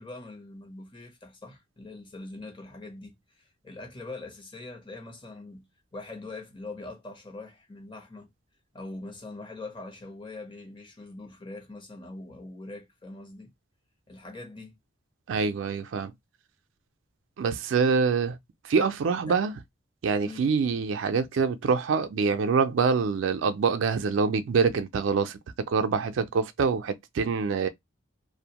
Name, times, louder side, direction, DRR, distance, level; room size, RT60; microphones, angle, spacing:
voice 1, 0.0-8.3 8.7-13.5 14.1-14.8 19.1-19.4 20.2-20.4, left 2 dB, 25° left, 0.6 m, -43 dB
voice 2, 15.3-16.1 17.4-18.4 18.6-19.5 20.0-25.4 25.7-27.7, right 5 dB, 70° right, 0.4 m, -25 dB
2.5 x 2.1 x 2.8 m
head